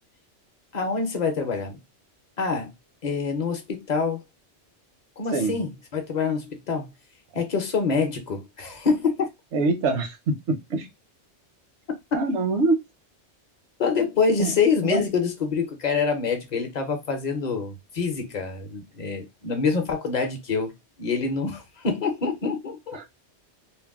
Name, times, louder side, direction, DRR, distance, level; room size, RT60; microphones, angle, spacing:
voice 1, 0.7-1.8 2.4-2.7 3.0-4.2 5.2-6.9 7.3-9.3 13.8-20.7 21.0-23.0, left 5 dB, 45° left, 0.7 m, -26 dB
voice 2, 9.5-10.9 12.1-12.8 14.4-14.5 14.8-15.0 22.9-23.0, right 3 dB, 80° right, 1.0 m, -24 dB
2.6 x 2.0 x 3.4 m
omnidirectional pair, 1.2 m